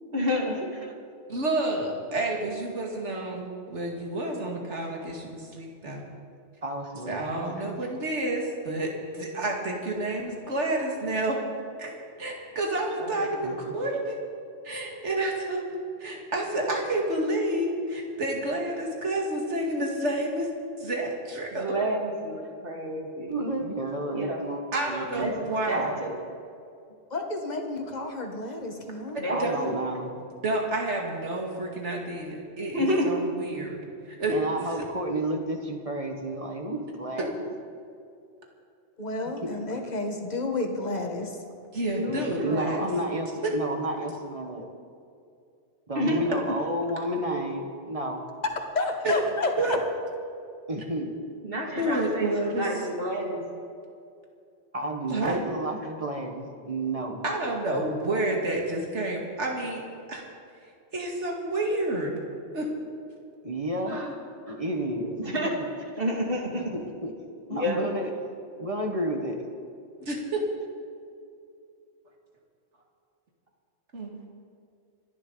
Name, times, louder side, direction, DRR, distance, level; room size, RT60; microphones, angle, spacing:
voice 1, 0.1-0.6 13.0-13.9 21.5-23.4 24.1-24.4 25.2-25.3 25.7-26.2 29.1-29.7 32.7-33.1 39.5-39.6 42.0-42.9 45.9-46.2 51.4-53.4 63.9-64.1 65.2-65.6 66.0-66.6 67.5-67.8, equal, 50° right, -1 dB, 2.7 m, -30 dB
voice 2, 1.3-6.0 7.1-11.4 11.8-14.2 14.6-20.5 20.8-21.6 24.7-25.9 29.1-29.7 30.4-33.8 34.1-34.4 37.2-37.3 41.7-42.9 43.4-43.5 49.0-49.1 49.6-49.7 51.8-52.7 55.1-55.4 57.2-59.8 60.1-60.3 60.9-62.1 62.5-62.7 63.8-64.1 70.0-70.4 73.9-74.2, right 2 dB, 75° right, 0 dB, 2.5 m, -29 dB
voice 3, 6.6-7.7 13.4-13.7 23.3-26.2 29.3-30.1 34.3-37.5 39.4-39.5 42.1-44.7 45.9-48.2 50.7-51.1 54.7-57.2 63.4-64.0 64.5-65.9 66.5-67.1 67.5-68.1 68.6-69.5, right 1 dB, 30° right, 2 dB, 1.5 m, -31 dB
voice 4, 27.1-29.2 39.0-41.4 48.7-49.8, left 2 dB, 35° left, 3 dB, 1.6 m, -30 dB
27.0 x 11.0 x 4.0 m, 2.5 s
omnidirectional pair, 1.2 m